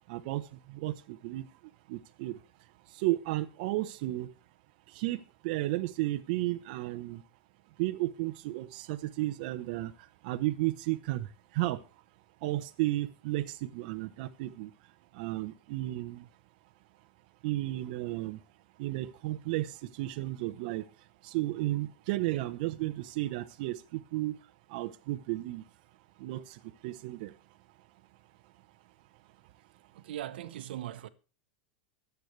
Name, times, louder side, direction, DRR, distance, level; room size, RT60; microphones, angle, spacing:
voice 1, 0.1-0.4 0.7-1.5 1.9-2.4 2.9-4.3 4.9-7.2 7.8-9.9 10.2-11.8 12.4-14.7 15.1-16.3 17.4-18.4 18.8-20.8 21.2-24.4 24.7-25.6 26.2-27.3, right 17 dB, 55° right, 0.9 m, -33 dB
voice 2, 30.0-31.1, right 12 dB, 80° right, 1.1 m, -40 dB
24.0 x 8.2 x 3.3 m
supercardioid pair, 150°, 5 cm